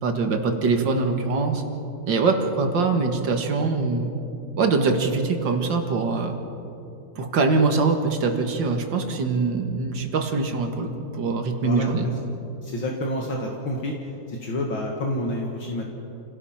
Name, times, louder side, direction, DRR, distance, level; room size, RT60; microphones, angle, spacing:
voice 1, 0.0-1.6 2.1-4.1 4.6-6.3 7.2-12.1, right 4 dB, 60° right, 4 dB, 2.4 m, -23 dB
voice 2, 11.6-12.1 12.6-13.9 14.3-15.9, left 1 dB, 70° left, 0 dB, 2.5 m, -28 dB
29.0 x 17.5 x 5.8 m, 2.9 s
omnidirectional pair, 2.3 m